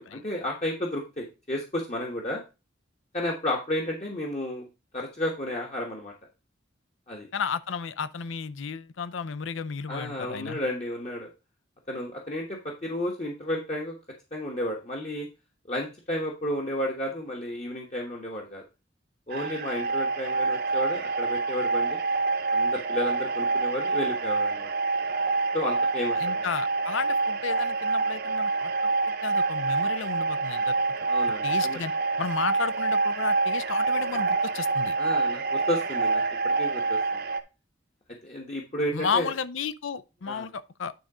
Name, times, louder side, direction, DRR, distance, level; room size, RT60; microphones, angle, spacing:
voice 1, 0.0-2.4 3.1-4.6 4.9-6.1 7.1-7.3 9.9-11.3 11.9-13.9 14.3-15.3 15.7-18.6 19.3-22.0 22.5-24.7 25.5-26.4 31.1-31.8 35.0-37.2 38.2-39.3 40.3-40.5, left 1 dB, 35° left, 1.2 m, -32 dB
voice 2, 7.3-10.6 26.2-30.8 31.4-31.9 32.2-35.0 38.9-40.9, left 6 dB, 80° left, 0.5 m, -33 dB
sound 1, 19.3-37.4, right 3 dB, 50° right, 0.8 m, -26 dB
9.5 x 3.9 x 4.8 m
head